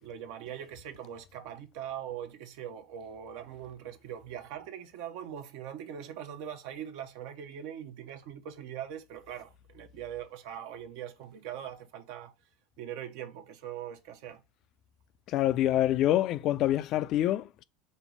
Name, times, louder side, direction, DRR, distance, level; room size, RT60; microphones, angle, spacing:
voice 1, 0.0-12.3 12.8-14.4, right 9 dB, 65° right, 0.7 m, -41 dB
voice 2, 15.3-17.6, left 13 dB, 50° left, 0.3 m, -26 dB
5.3 x 2.0 x 4.7 m
hypercardioid pair, 100°, 0 cm